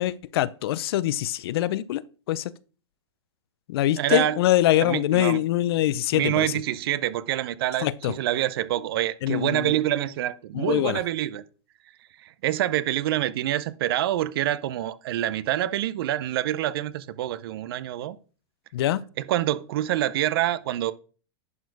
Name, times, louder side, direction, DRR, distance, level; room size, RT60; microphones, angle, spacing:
voice 1, 0.0-2.0 2.3-2.5 3.7-6.5 7.8-8.1 9.2-9.8 10.5-11.0 18.7-19.0, left 14 dB, 60° left, 0.5 m, -24 dB
voice 2, 4.0-4.4 4.8-5.4 6.1-11.4 12.2-18.2 19.2-20.9, right 13 dB, 60° right, 0.5 m, -26 dB
11.0 x 4.3 x 4.7 m
supercardioid pair, 150°, 14 cm